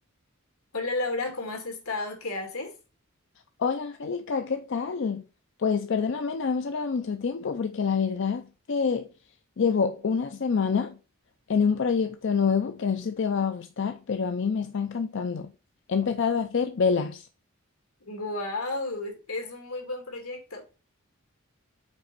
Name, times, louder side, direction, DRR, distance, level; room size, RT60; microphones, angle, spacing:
voice 1, 0.7-2.7 18.1-20.6, left 2 dB, 85° left, 1.9 m, -32 dB
voice 2, 3.6-5.2 5.6-9.1 9.6-11.0 11.5-15.5 15.9-17.2, left 5 dB, 60° left, 0.5 m, -27 dB
5.3 x 4.1 x 5.1 m
head